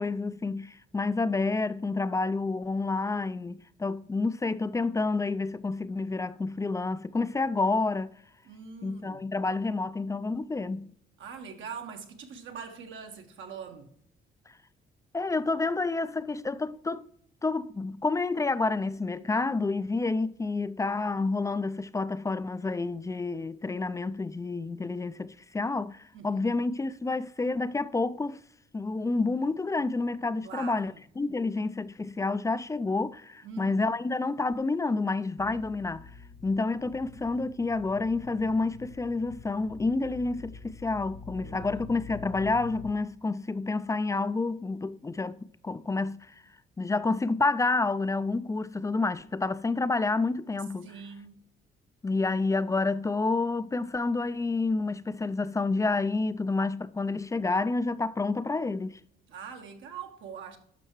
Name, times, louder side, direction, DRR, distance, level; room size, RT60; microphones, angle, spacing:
voice 1, 0.0-8.1 8.8-10.9 15.1-17.1 17.4-28.4 28.7-36.0 36.4-46.3 46.8-50.9 52.0-59.0, left 3 dB, 15° left, 0.3 m, -29 dB
voice 2, 8.4-9.2 11.2-13.9 26.1-26.6 30.4-31.0 33.4-33.9 41.3-41.7 50.8-51.4 59.3-60.6, right 6 dB, 75° right, 1.4 m, -43 dB
sound 1, 35.4-42.9, left 6 dB, 65° left, 0.7 m, -46 dB
12.0 x 5.5 x 3.1 m
cardioid pair, 90°, 20 cm